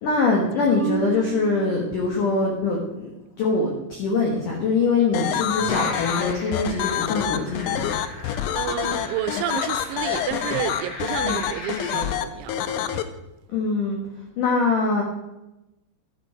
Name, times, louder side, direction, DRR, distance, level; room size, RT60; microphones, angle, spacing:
voice 1, 0.0-3.1 3.4-7.9 11.2-11.4 13.5-14.0 14.4-15.0, left 3 dB, 65° left, -1 dB, 2.1 m, -23 dB
Marimba xylophone, 0.8-2.8, right 12 dB, 65° right, 1.7 m, -34 dB
sound 1, 5.1-13.0, left 11 dB, 90° left, 3.2 m, -26 dB
sound 2, 5.7-12.0, left 1 dB, 25° left, 4.2 m, -37 dB
voice 2, 8.2-13.1, right 12 dB, 85° right, 10 dB, 2.9 m, -31 dB
12.0 x 9.6 x 4.4 m, 0.95 s
omnidirectional pair, 5.5 m